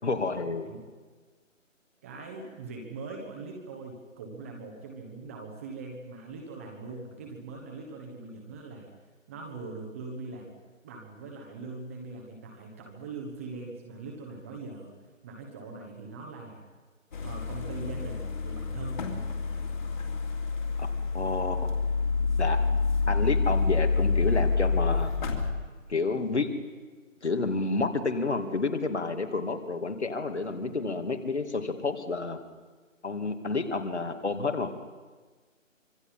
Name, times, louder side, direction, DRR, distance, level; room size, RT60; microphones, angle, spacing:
voice 1, 0.0-0.7 20.8-21.8 22.4-22.6 23.1-25.1 25.9-26.5 27.2-32.4 33.0-34.7, left 3 dB, 55° left, 6 dB, 2.5 m, -30 dB
voice 2, 2.0-8.9 9.3-10.5 10.8-14.9 15.2-16.6 17.2-19.3, right 3 dB, 10° right, 0 dB, 1.2 m, -41 dB
sound 1, 17.1-25.5, left 4 dB, 35° left, 2.8 m, -28 dB
25.5 x 24.5 x 5.7 m, 1.4 s
figure-of-eight pair, 150°, 39 cm